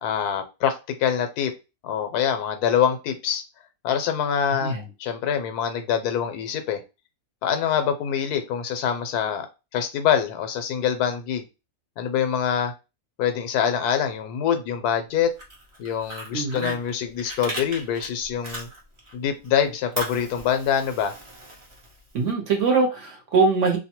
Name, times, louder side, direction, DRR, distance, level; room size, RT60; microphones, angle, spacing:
voice 1, 0.0-1.5 1.8-3.4 3.8-6.8 7.4-9.5 9.7-11.4 12.0-12.7 13.2-15.3 15.8-18.7 19.1-21.1, left 8 dB, 85° left, 7 dB, 1.1 m, -25 dB
voice 2, 4.5-4.8 16.3-16.7 22.1-23.8, right 4 dB, 60° right, 3 dB, 0.9 m, -22 dB
Fire, 15.2-19.1 19.4-22.2, right 1 dB, 45° right, 0.4 m, -37 dB
2.7 x 2.2 x 2.8 m, 0.27 s
omnidirectional pair, 1.6 m